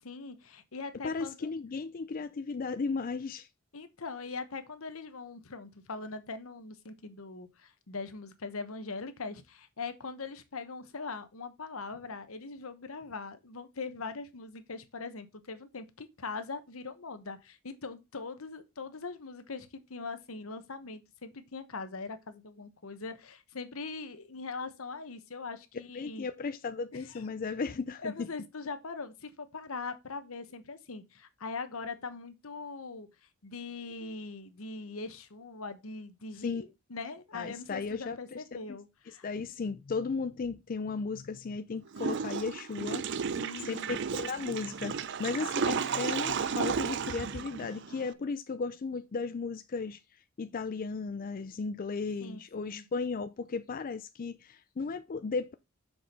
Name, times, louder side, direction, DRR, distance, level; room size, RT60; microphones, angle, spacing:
voice 1, 0.0-1.5 3.7-26.3 26.9-27.2 28.0-33.1 33.4-39.2 43.4-44.0 52.2-52.8, left 4 dB, 75° left, 1.1 m, -41 dB
voice 2, 1.0-3.5 25.9-28.3 36.4-36.7 37.3-38.4 39.1-43.4 43.7-50.0 50.4-55.5, left 4 dB, 40° left, 0.4 m, -35 dB
Water / Toilet flush, 41.9-48.1, right 6 dB, 55° right, 0.5 m, -33 dB
6.2 x 4.7 x 5.3 m
head